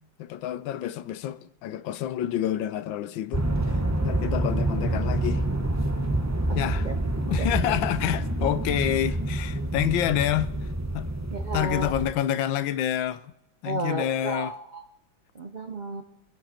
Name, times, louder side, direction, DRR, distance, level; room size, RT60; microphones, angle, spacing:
voice 1, 0.2-3.5 4.0-5.4 6.5-6.9 7.3-10.5 10.9-11.1 11.5-13.3 13.6-14.5, left 11 dB, 80° left, 1.4 m, -28 dB
sound 1, 3.3-12.1, right 1 dB, 15° right, 0.8 m, -27 dB
voice 2, 11.3-11.9 13.6-14.8 15.3-16.0, right 2 dB, 85° right, 0.4 m, -32 dB
23.0 x 10.5 x 4.3 m
omnidirectional pair, 2.1 m